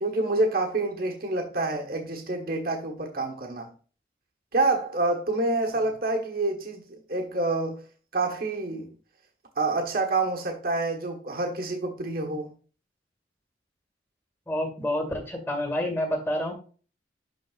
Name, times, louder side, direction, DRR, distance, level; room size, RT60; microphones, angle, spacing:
voice 1, 0.0-3.7 4.5-7.8 8.1-8.9 9.6-12.5, right 2 dB, 55° right, 1.3 m, -27 dB
voice 2, 14.5-16.5, left 1 dB, 10° left, 1.9 m, -28 dB
12.0 x 4.0 x 2.4 m
head